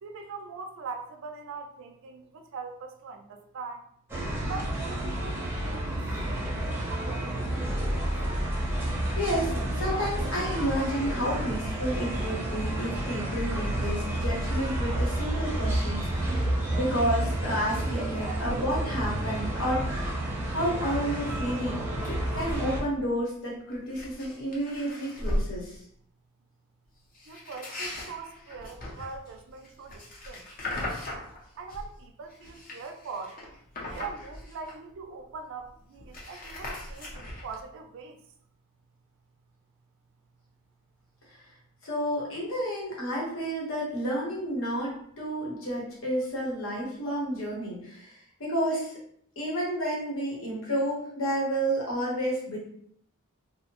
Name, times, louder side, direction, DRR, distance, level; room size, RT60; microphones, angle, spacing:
voice 1, 0.0-3.8 4.5-8.1 27.3-30.5 31.5-33.4 33.8-38.2, right 4 dB, 60° right, 5 dB, 0.4 m, -42 dB
sound 1, 4.1-22.8, right 1 dB, 10° right, 0.6 m, -30 dB
voice 2, 9.2-20.1 20.4-21.8 22.3-25.8 41.8-48.1 48.4-49.0 49.4-52.6, equal, 65° left, -4 dB, 0.9 m, -31 dB
sound 2, 21.3-21.5 21.9-22.7 22.9-23.2 23.7-25.5 27.1-31.9 32.3-35.0 35.3-35.4 35.6-37.6, left 1 dB, 40° left, 0.6 m, -38 dB
2.7 x 2.0 x 2.9 m, 0.66 s
head